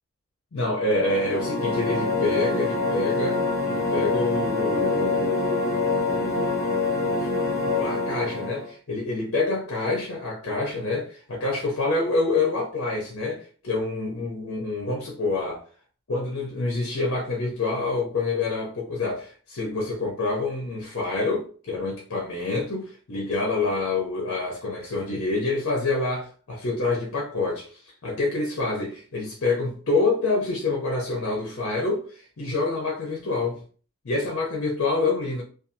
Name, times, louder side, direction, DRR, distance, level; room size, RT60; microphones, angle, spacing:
voice 1, 0.5-3.4 3.7-5.8 6.2-6.4 7.1-7.3 7.6-15.6 16.1-33.6 34.0-35.4, left 3 dB, 60° left, 0.6 m, -27 dB
sound 1, 0.9-8.7, left 3 dB, 35° left, 1.0 m, -25 dB
2.6 x 2.3 x 2.6 m
head